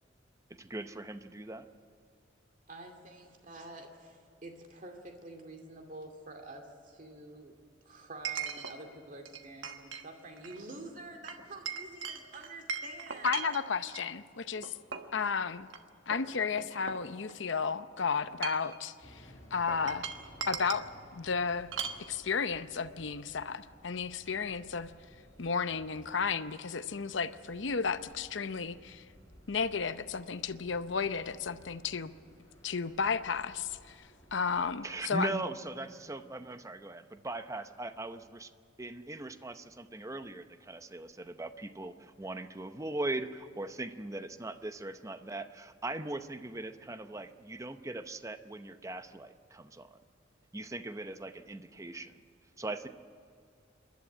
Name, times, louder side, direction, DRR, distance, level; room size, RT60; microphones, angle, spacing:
voice 1, 0.5-1.7 34.8-38.5 38.8-50.0 50.5-52.1 52.6-52.9, right 2 dB, 15° right, 10 dB, 0.7 m, -40 dB
voice 2, 2.7-7.5 7.8-13.6 14.5-14.7, right 2 dB, 40° right, 4 dB, 2.3 m, -48 dB
Chink clink, 4.8-4.9 8.3-8.8 9.3-10.1 10.4-10.6 11.3-14.1 14.6-15.2 15.7-15.8 16.1-17.5 18.2-18.8 19.7-20.9 21.7-22.0, right 6 dB, 70° right, 1.3 m, -39 dB
voice 3, 13.2-14.8 15.1-15.7 16.1-20.1 20.5-20.8 21.1-21.7 22.0-24.9 25.4-29.0 29.5-32.1 32.6-35.4, left 5 dB, 65° left, 12 dB, 0.7 m, -33 dB
sound 1, 19.0-35.1, equal, 15° left, 4.7 m, -58 dB
27.5 x 11.5 x 9.6 m, 2.3 s
head